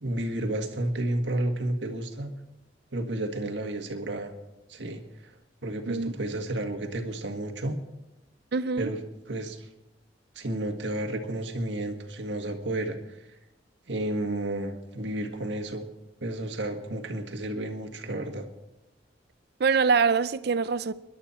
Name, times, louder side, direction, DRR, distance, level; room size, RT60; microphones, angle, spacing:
voice 1, 0.0-2.3 2.9-4.3 4.7-5.0 5.6-7.8 8.8-9.0 9.3-9.7 10.4-13.0 13.9-15.9 16.2-18.5, right 1 dB, 75° right, 1.8 m, -31 dB
voice 2, 8.5-8.9 19.6-20.9, right 5 dB, 60° right, 0.5 m, -24 dB
26.0 x 11.5 x 4.3 m
head